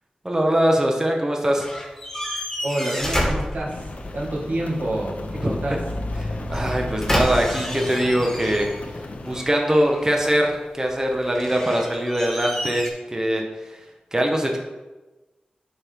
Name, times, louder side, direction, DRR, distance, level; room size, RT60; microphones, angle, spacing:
voice 1, 0.2-1.7 5.4-5.5 6.2-8.7 9.2-13.8 14.1-14.6, right 1 dB, 20° right, 1 dB, 1.1 m, -22 dB
sound 1, 1.6-4.2 6.5-9.0 9.3-10.2 11.2-12.9, equal, 15° left, 2.0 m, -29 dB
voice 2, 2.6-3.8 4.1-5.8, right 1 dB, 65° right, -3 dB, 1.8 m, -27 dB
Rain, 3.7-9.4, left 2 dB, 60° left, 0.8 m, -32 dB
9.5 x 4.7 x 3.6 m, 1.1 s
wide cardioid pair, 70°, 3 cm